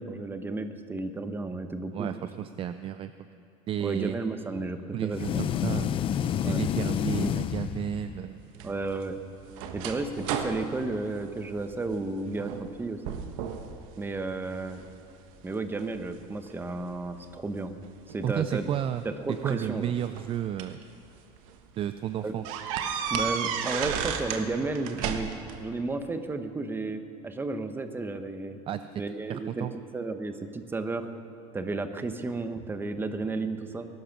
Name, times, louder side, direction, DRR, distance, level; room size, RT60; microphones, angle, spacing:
voice 1, 0.0-2.1 3.8-5.7 6.4-6.6 8.6-9.2 9.7-13.2 14.0-14.8 15.4-17.8 18.1-18.7 19.0-19.9 22.2-22.3 23.1-25.3 25.6-28.6 29.0-29.7 29.9-31.1 31.5-33.9, right 3 dB, 10° right, 8 dB, 0.9 m, -33 dB
voice 2, 1.9-3.1 3.7-4.2 4.9-6.0 6.5-8.4 12.4-12.5 18.2-19.0 19.4-20.8 21.8-22.4 28.7-28.8 29.1-29.7, right 10 dB, 35° right, 11 dB, 0.4 m, -32 dB
sound 1, 5.1-8.3, left 9 dB, 30° left, 0.5 m, -29 dB
sound 2, 8.5-12.0 12.4-12.8 13.0-13.7 14.2-14.9 15.5-16.9 18.1-18.2 19.4-20.8 21.4-21.5 21.8-21.9 22.4-24.5 24.7-25.6, right 7 dB, 85° right, 1.3 m, -33 dB
20.0 x 12.0 x 6.0 m, 2.8 s
cardioid pair, 140°, 17 cm